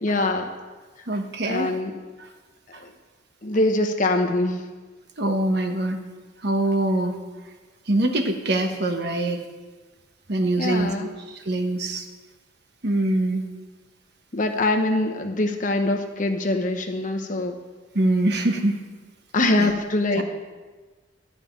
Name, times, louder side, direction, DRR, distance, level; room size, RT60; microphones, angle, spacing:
voice 1, 0.0-0.5 1.4-1.9 2.8-2.9 3.4-4.6 10.6-11.1 14.3-17.6 19.3-20.2, left 2 dB, 40° left, 4 dB, 0.9 m, -23 dB
voice 2, 1.1-1.7 2.2-2.3 2.7-2.8 5.2-6.0 6.4-7.2 7.9-9.4 10.3-12.1 12.8-13.4 17.9-18.8 19.6-19.7 20.1-20.2, right 1 dB, 55° right, 4 dB, 1.2 m, -24 dB
12.5 x 5.2 x 8.7 m, 1.3 s
head